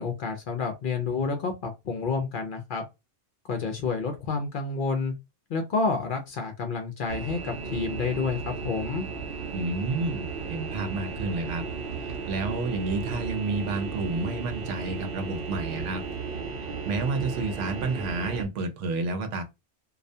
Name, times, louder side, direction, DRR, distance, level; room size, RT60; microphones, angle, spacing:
voice 1, 0.0-2.8 3.5-5.1 5.5-9.1, left 4 dB, 60° left, 0.6 m, -29 dB
sound 1, 7.1-18.4, right 5 dB, 60° right, 0.8 m, -35 dB
voice 2, 9.5-11.6 12.0-16.0 16.8-19.4, right 3 dB, 85° right, 0.9 m, -30 dB
2.4 x 2.1 x 2.6 m
omnidirectional pair, 1.2 m